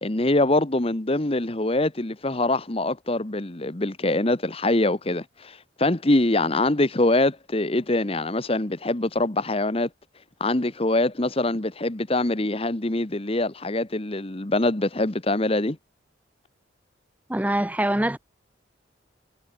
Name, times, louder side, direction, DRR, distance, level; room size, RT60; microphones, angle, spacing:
voice 1, 0.0-9.9 10.4-15.8, left 2 dB, 30° left, 1.2 m, -24 dB
voice 2, 17.3-18.2, right 1 dB, 10° right, 0.8 m, -24 dB
head